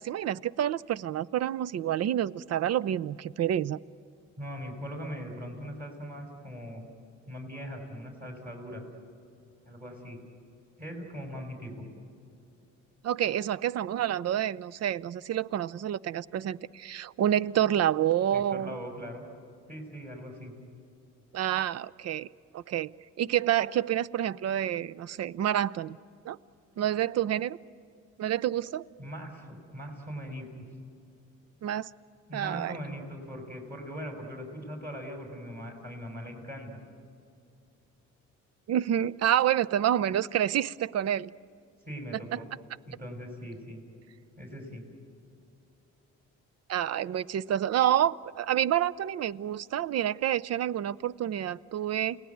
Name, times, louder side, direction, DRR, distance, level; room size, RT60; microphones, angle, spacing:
voice 1, 0.0-3.8 13.0-18.7 21.3-22.3 22.5-22.9 23.2-26.0 26.3-26.4 26.8-27.6 28.2-28.8 31.6-31.9 32.3-32.8 38.7-41.3 42.3-42.4 46.7-52.2, right 11 dB, 55° right, 18 dB, 0.6 m, -28 dB
voice 2, 4.4-6.8 7.3-8.8 9.7-10.2 10.8-11.9 18.3-19.2 19.7-20.5 29.0-30.5 32.3-36.8 41.8-42.5 42.9-43.8 44.4-44.8, equal, 30° right, 2 dB, 5.7 m, -40 dB
29.0 x 18.0 x 9.4 m, 2.6 s
cardioid pair, 90°, 30 cm